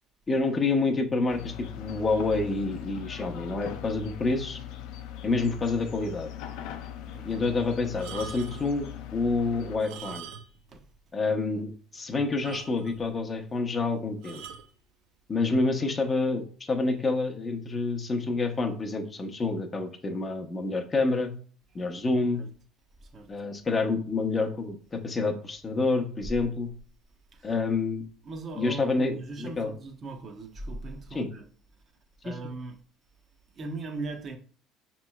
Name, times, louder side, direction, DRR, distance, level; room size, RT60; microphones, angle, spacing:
voice 1, 0.3-4.6 5.2-6.3 7.2-10.3 11.1-14.4 15.3-21.3 21.7-22.4 23.3-26.7 27.4-28.0 28.6-29.7 31.1-31.3 32.2-32.3, left 3 dB, 25° left, 0.6 m, -28 dB
sound 1, 1.3-9.8, left 10 dB, 75° left, 0.4 m, -40 dB
voice 2, 7.0-7.4 10.7-10.8 22.4-22.5 23.0-23.3 27.3-27.5 28.2-31.4 32.2-32.8 33.5-34.4, right 3 dB, 40° right, 0.7 m, -39 dB
sound 2, 7.9-8.8 9.7-10.7 11.0-11.1 11.6-11.7 12.0-12.1 12.4-13.1 14.2-14.7 15.5-15.8, right 6 dB, 85° right, 0.5 m, -42 dB
5.3 x 3.0 x 2.3 m
cardioid pair, 130°, 0 cm